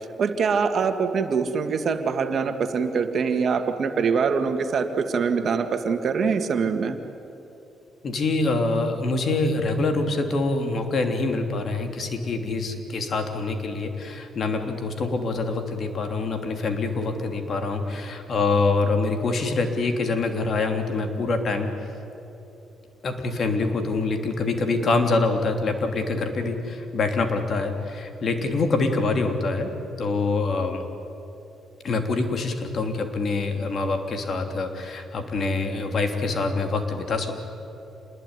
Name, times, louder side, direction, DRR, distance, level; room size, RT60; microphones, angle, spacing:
voice 1, 0.2-7.0, right 5 dB, 55° right, 7 dB, 2.1 m, -24 dB
voice 2, 8.0-21.7 23.0-29.7 30.0-30.8 31.8-37.4, left 3 dB, 50° left, 5 dB, 3.2 m, -25 dB
27.5 x 20.5 x 10.0 m, 3.0 s
cardioid pair, 90°, 0 cm